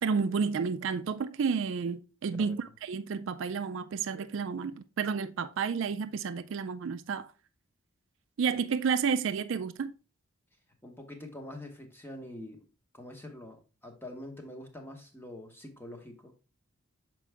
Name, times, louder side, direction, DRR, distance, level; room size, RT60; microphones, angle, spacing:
voice 1, 0.0-7.3 8.4-9.9, right 5 dB, 60° right, 0.4 m, -31 dB
voice 2, 10.8-12.7 12.9-16.3, left 1 dB, 10° left, 0.8 m, -45 dB
6.2 x 4.5 x 3.3 m
head